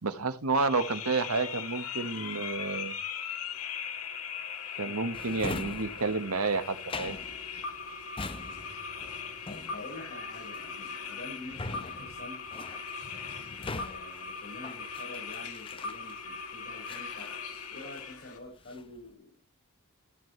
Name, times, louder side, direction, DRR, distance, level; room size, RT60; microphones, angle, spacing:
voice 1, 0.0-2.9 4.8-7.2, right 3 dB, 80° right, 10 dB, 1.3 m, -30 dB
sound 1, 0.5-18.4, left 6 dB, 80° left, 1.9 m, -39 dB
Drawer open or close, 5.1-16.4 16.8-18.1 18.5-19.0, left 3 dB, 25° left, 0.7 m, -43 dB
voice 2, 9.5-12.4 13.6-19.3, left 2 dB, 50° left, -4 dB, 5.5 m, -47 dB
13.5 x 7.7 x 3.3 m, 0.28 s
head